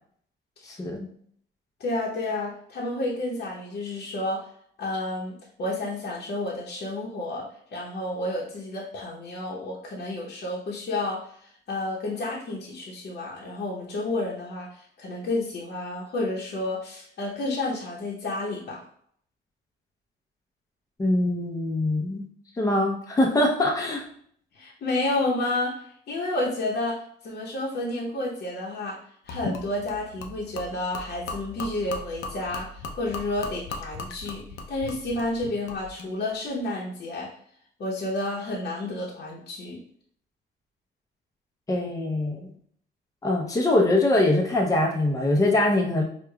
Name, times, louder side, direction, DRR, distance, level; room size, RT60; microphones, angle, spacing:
voice 1, 0.6-1.1 21.0-22.3 22.6-24.0 41.7-42.5 43.2-46.0, left 1 dB, 15° left, 0 dB, 0.6 m, -23 dB
voice 2, 1.8-4.4 4.8-7.4 7.7-18.8 24.5-29.0 29.3-37.3 37.8-39.8, left 2 dB, 55° left, -4 dB, 0.8 m, -30 dB
Gurgling / Liquid, 29.3-36.1, left 3 dB, 80° left, 0.6 m, -38 dB
4.7 x 2.3 x 2.3 m, 0.64 s
cardioid pair, 90°, 20 cm